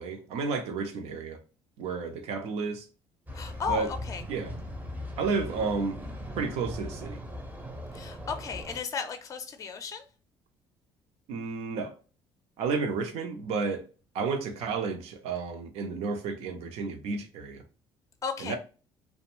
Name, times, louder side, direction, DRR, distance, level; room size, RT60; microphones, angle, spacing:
voice 1, 0.0-1.4 1.8-2.8 3.7-3.9 4.3-4.5 5.2-6.0 6.4-7.2 11.3-11.9 12.6-13.8 14.1-17.6 18.4-18.6, right 4 dB, 75° right, 0.6 m, -31 dB
voice 2, 3.3-4.2 7.9-10.1 18.2-18.6, left 5 dB, 30° left, 0.5 m, -34 dB
sound 1, 3.3-8.8, left 1 dB, 15° right, 0.6 m, -39 dB
2.5 x 2.2 x 2.9 m
cardioid pair, 115°, 10 cm